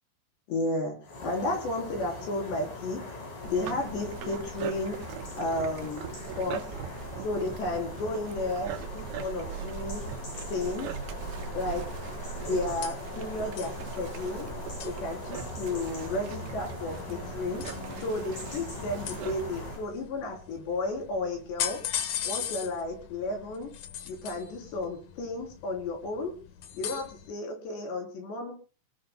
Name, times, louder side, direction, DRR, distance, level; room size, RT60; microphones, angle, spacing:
voice 1, 0.5-1.0 1.2-3.0 3.4-5.0 5.4-6.6 7.2-10.0 10.5-10.9 11.5-11.9 12.4-14.5 14.8-17.6 18.0-21.8 22.2-23.7 24.1-26.3 26.8-28.5, left 2 dB, 70° left, 2 dB, 5.7 m, -33 dB
sound 1, 1.0-19.9, left 2 dB, 40° left, 7.5 m, -41 dB
sound 2, 3.4-19.8, right 8 dB, 75° right, 2.8 m, -40 dB
sound 3, 10.4-27.3, left 9 dB, 90° left, 1.6 m, -41 dB
29.0 x 18.5 x 2.2 m, 0.37 s
omnidirectional pair, 5.3 m